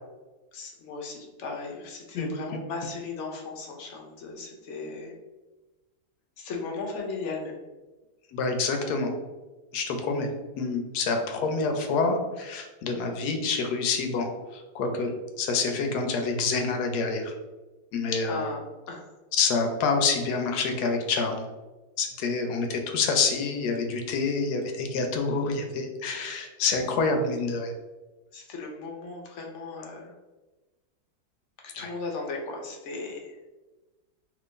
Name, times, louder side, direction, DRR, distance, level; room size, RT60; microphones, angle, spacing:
voice 1, 0.5-5.1 6.4-7.6 18.1-19.1 28.3-30.1 31.8-33.5, left 3 dB, 60° left, 0 dB, 0.8 m, -36 dB
voice 2, 2.1-2.6 8.3-9.1 9.7-10.3 10.6-14.3 14.5-15.1 15.4-17.3 17.9-18.4 19.3-21.5 22.0-27.7 31.8-31.9, left 4 dB, 75° left, 4 dB, 1.1 m, -27 dB
2.9 x 2.5 x 3.6 m, 1.2 s
omnidirectional pair, 1.7 m